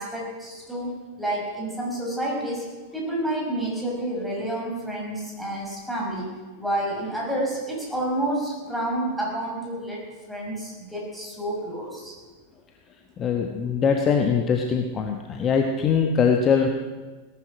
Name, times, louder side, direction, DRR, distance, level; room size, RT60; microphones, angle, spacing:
voice 1, 0.0-2.7 2.9-6.3 6.6-12.1, right 1 dB, ahead, -4 dB, 5.7 m, -29 dB
voice 2, 13.2-16.7, left 6 dB, 25° left, 3 dB, 1.2 m, -22 dB
18.0 x 10.5 x 6.2 m, 1.3 s
figure-of-eight pair, 90°, 0 cm